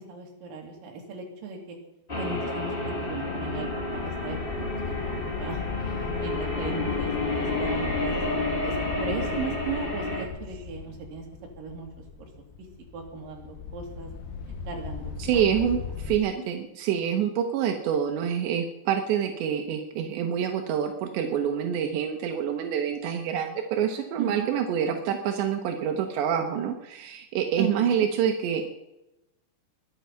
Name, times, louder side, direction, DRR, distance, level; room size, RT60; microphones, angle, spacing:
voice 1, 0.1-1.8 2.1-4.7 5.0-7.3 7.6-8.4 8.6-11.2 11.6-11.9 12.2-12.3 12.9-14.1 14.7-15.4 24.2-24.5 27.6-28.1, right 5 dB, 55° right, 1 dB, 4.1 m, -36 dB
sound 1, 2.1-10.2, left 2 dB, 40° left, 0.7 m, -30 dB
sound 2, 2.8-16.2, left 6 dB, 75° left, 3.3 m, -37 dB
voice 2, 15.2-28.7, right 8 dB, 85° right, 4 dB, 3.4 m, -27 dB
21.5 x 9.3 x 5.8 m, 0.94 s
omnidirectional pair, 5.0 m